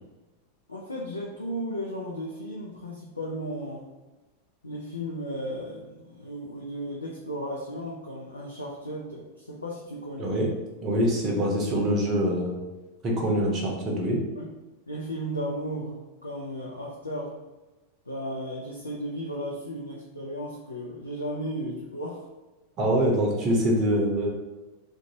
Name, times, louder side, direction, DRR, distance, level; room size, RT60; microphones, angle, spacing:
voice 1, 0.7-3.9 4.6-10.4 14.4-14.5 14.9-17.4 18.1-22.2, equal, 80° left, -3 dB, 0.4 m, -35 dB
voice 2, 10.2-10.5 10.8-12.6 13.0-14.2 22.8-24.3, equal, 30° right, -1 dB, 0.7 m, -24 dB
2.5 x 2.2 x 2.8 m, 1.1 s
figure-of-eight pair, 90°, 0 cm